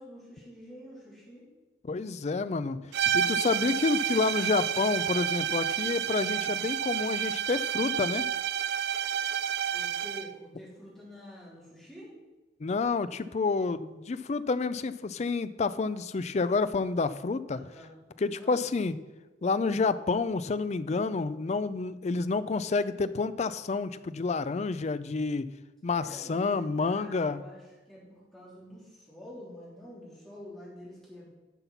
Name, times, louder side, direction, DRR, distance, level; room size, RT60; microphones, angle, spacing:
voice 1, 0.0-1.5 9.7-12.1 17.5-17.9 18.3-18.6 25.9-31.3, equal, ahead, -7 dB, 3.4 m, -48 dB
voice 2, 1.8-2.8 3.1-8.2 12.6-17.6 18.2-19.0 19.4-25.5 25.8-27.4, left 4 dB, 35° left, 14 dB, 0.4 m, -29 dB
sound 1, 2.9-10.3, right 9 dB, 60° right, 0.3 m, -30 dB
11.0 x 5.7 x 5.8 m, 1.2 s
head